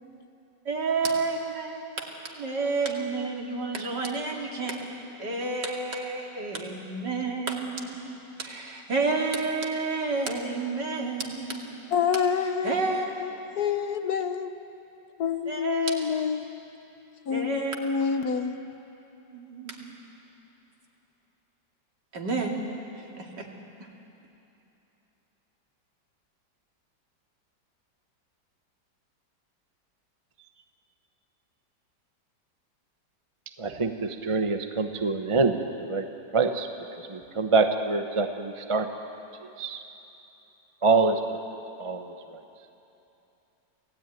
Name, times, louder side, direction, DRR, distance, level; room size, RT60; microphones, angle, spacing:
voice 1, 0.6-11.8 12.6-13.0 15.5-16.0 17.3-17.7 19.3-20.0 22.1-22.6 23.2-23.5, right 4 dB, 65° right, 0 dB, 3.0 m, -30 dB
voice 2, 11.9-14.5 15.2-16.5 17.3-18.5, left 7 dB, 60° left, 8 dB, 1.4 m, -28 dB
voice 3, 33.6-36.1 36.3-36.7 37.0-38.9 39.6-39.8 40.8-41.4 41.8-42.4, right 4 dB, 25° right, 6 dB, 0.8 m, -25 dB
27.5 x 16.5 x 9.2 m, 2.9 s
omnidirectional pair, 2.0 m